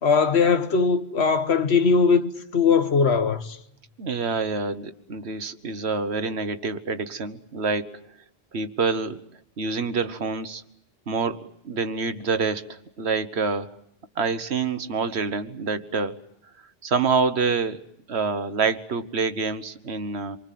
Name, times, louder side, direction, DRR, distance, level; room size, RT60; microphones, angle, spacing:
voice 1, 0.0-3.6, left 5 dB, 85° left, 1.6 m, -20 dB
voice 2, 4.0-8.0 8.5-9.2 9.6-10.6 11.1-13.7 14.2-16.2 16.8-17.8 18.1-20.4, right 4 dB, 85° right, 1.5 m, -27 dB
27.5 x 24.0 x 7.6 m
omnidirectional pair, 1.1 m